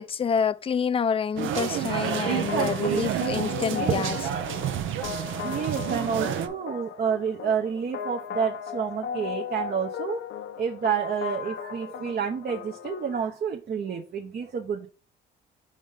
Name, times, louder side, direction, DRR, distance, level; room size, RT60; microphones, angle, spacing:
voice 1, 0.0-4.2, left 6 dB, 30° left, 0.4 m, -27 dB
voice 2, 1.4-1.8 2.2-4.1 4.6-4.7 5.4-10.2 10.6-14.9, right 7 dB, 50° right, 0.8 m, -29 dB
sound 1, 1.4-6.5, right 10 dB, 80° right, 0.7 m, -30 dB
sound 2, 1.6-13.2, left 8 dB, 70° left, 0.7 m, -37 dB
5.4 x 5.0 x 3.7 m
cardioid pair, 90°, 20 cm